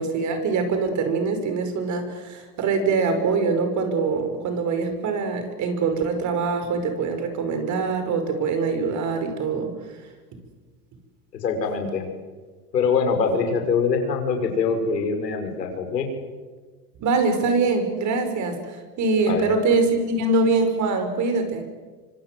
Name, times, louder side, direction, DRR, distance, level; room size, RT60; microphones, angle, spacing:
voice 1, 0.0-9.7 17.0-21.6, right 4 dB, 35° right, 7 dB, 5.7 m, -23 dB
voice 2, 11.4-12.0 12.7-16.1 19.3-19.5, left 5 dB, 90° left, 5 dB, 6.0 m, -23 dB
25.5 x 25.5 x 7.8 m, 1.4 s
hypercardioid pair, 115°, 48 cm